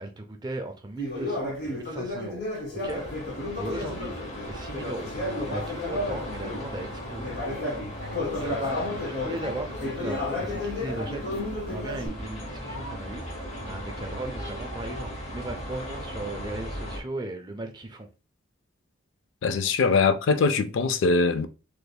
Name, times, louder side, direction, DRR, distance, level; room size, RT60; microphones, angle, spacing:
voice 1, 0.0-2.4 2.7-4.2 4.5-7.4 8.2-13.4 13.6-18.1 19.6-19.7, right 2 dB, 20° right, 0.4 m, -37 dB
Conversation, 0.9-6.7 7.2-12.1, left 2 dB, 50° left, 1.3 m, -32 dB
sound 1, 2.8-17.0, equal, 35° left, 0.8 m, -37 dB
voice 2, 19.4-21.5, left 4 dB, 70° left, 0.4 m, -22 dB
3.3 x 3.2 x 2.2 m
head